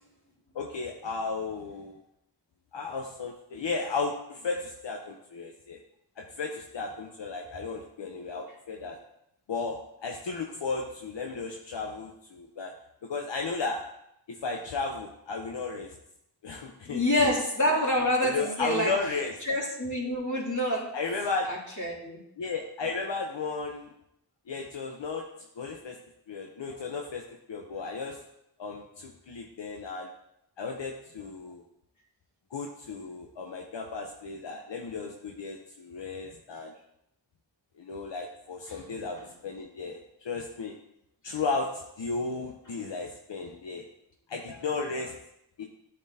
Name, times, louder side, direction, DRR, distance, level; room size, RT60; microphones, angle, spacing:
voice 1, 0.5-2.0 2.7-5.8 6.2-9.0 9.5-12.7 13.0-13.8 14.3-16.0 16.4-17.0 17.7-17.8 18.2-19.3 20.9-21.5 22.4-23.9 24.5-25.3 25.6-26.0 26.3-27.2 27.5-28.2 28.6-30.1 30.6-31.6 32.5-36.7 37.8-40.7 41.2-43.8 44.3-45.2 45.6-45.7, left 4 dB, 80° left, 1 dB, 0.8 m, -34 dB
voice 2, 16.8-18.9 19.4-21.0 21.5-22.2 38.7-38.8, left 1 dB, 45° left, -5 dB, 2.6 m, -27 dB
11.5 x 4.5 x 2.7 m, 0.78 s
wide cardioid pair, 55°, 43 cm